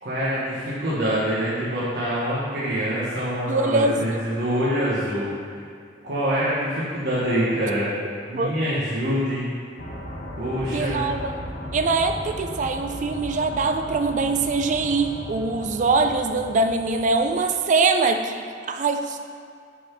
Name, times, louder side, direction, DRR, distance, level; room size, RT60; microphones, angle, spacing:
voice 1, 0.0-5.3 6.0-7.9 8.3-9.5 10.4-11.1, equal, 65° right, -9 dB, 1.2 m, -25 dB
voice 2, 3.5-4.2 8.3-8.5 10.7-11.3 11.7-19.2, right 3 dB, 45° right, 6 dB, 0.4 m, -23 dB
sound 1, 9.8-17.6, equal, 60° left, 1.1 m, -36 dB
6.0 x 4.0 x 4.5 m, 2.3 s
head